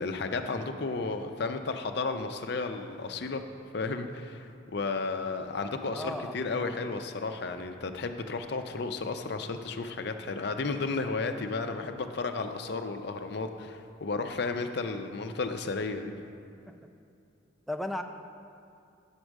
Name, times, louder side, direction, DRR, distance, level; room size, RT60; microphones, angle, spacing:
voice 1, 0.0-3.4 3.7-16.1, left 3 dB, 60° left, 7 dB, 0.5 m, -33 dB
voice 2, 5.9-6.7 16.7-16.8 17.7-18.0, left 1 dB, ahead, 4 dB, 0.3 m, -36 dB
8.8 x 4.7 x 6.3 m, 2.5 s
head